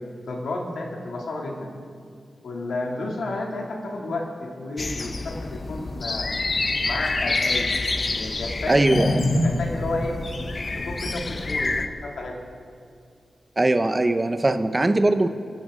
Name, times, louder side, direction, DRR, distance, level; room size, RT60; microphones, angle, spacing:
voice 1, 0.3-1.7 2.4-6.3 6.8-7.7 8.1-10.2 10.8-12.4, left 2 dB, 80° left, 0 dB, 2.3 m, -29 dB
sound 1, 4.8-11.9, left 3 dB, 30° left, 0.6 m, -28 dB
voice 2, 8.7-9.2 13.6-15.3, right 2 dB, 20° right, 9 dB, 0.6 m, -20 dB
24.5 x 11.5 x 3.7 m, 2.3 s
wide cardioid pair, 170°, 0 cm